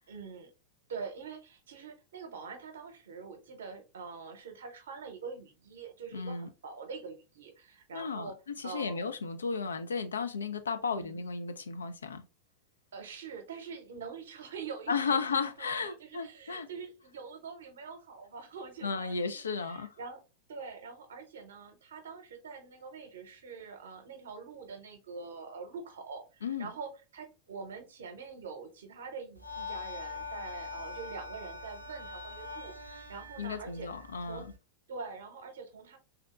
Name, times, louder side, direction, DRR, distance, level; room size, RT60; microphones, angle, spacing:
voice 1, 0.1-0.5 0.9-8.4 8.6-9.2 10.9-11.2 12.9-15.2 15.6-20.2 20.5-33.9 34.2-34.5 34.9-36.0, right 5 dB, 65° right, 0.8 m, -45 dB
voice 2, 6.1-6.5 7.9-8.3 8.6-12.2 14.9-16.7 18.8-19.9 26.4-26.7 33.4-34.5, left 5 dB, 70° left, 0.4 m, -34 dB
sound 1, 29.3-34.6, left 3 dB, 90° right, 0.5 m, -43 dB
3.5 x 2.7 x 2.3 m
figure-of-eight pair, 90°, 0 cm